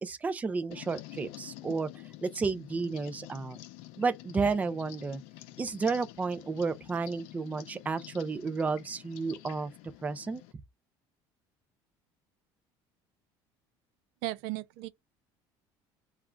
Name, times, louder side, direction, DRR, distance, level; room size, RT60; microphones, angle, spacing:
voice 1, 0.0-1.9 2.2-3.6 4.0-5.2 5.6-9.7 10.0-10.4, right 4 dB, 15° right, 0.5 m, -32 dB
sound 1, 0.7-10.5, left 16 dB, 80° left, 0.6 m, -48 dB
voice 2, 14.2-14.9, right 17 dB, 85° right, 0.6 m, -35 dB
3.6 x 2.4 x 4.3 m
cardioid pair, 150°, 10 cm